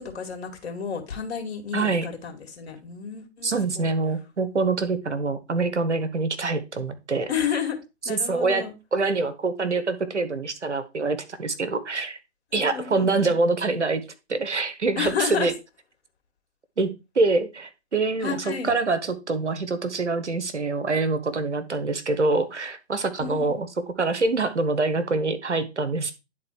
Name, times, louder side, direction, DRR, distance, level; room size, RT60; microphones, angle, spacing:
voice 1, 0.0-3.9 7.3-7.8 8.0-8.7 12.5-13.3 15.0-15.5 18.2-18.7 23.2-23.6, left 7 dB, 65° left, 3 dB, 2.4 m, -31 dB
voice 2, 1.7-2.1 3.4-7.3 8.0-8.6 8.9-12.2 12.5-14.0 14.3-15.5 16.8-16.9 17.1-26.1, right 3 dB, 85° right, 10 dB, 1.3 m, -25 dB
10.0 x 4.1 x 4.5 m, 0.27 s
figure-of-eight pair, 125°, 34 cm